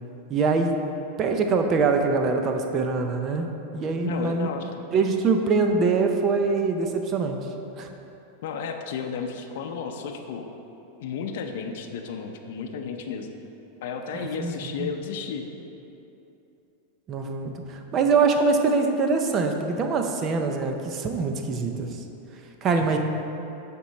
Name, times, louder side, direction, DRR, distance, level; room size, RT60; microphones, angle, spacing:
voice 1, 0.3-0.7 1.2-4.5 4.9-7.4 7.8-7.9 14.4-14.9 17.1-21.9 22.6-23.0, right 4 dB, 25° right, 5 dB, 0.6 m, -24 dB
voice 2, 4.0-4.8 8.4-10.5 11.0-13.3 13.8-15.5 22.8-22.9, left 6 dB, 60° left, 3 dB, 0.7 m, -33 dB
7.0 x 4.5 x 6.4 m, 2.9 s
supercardioid pair, 160°, 0 cm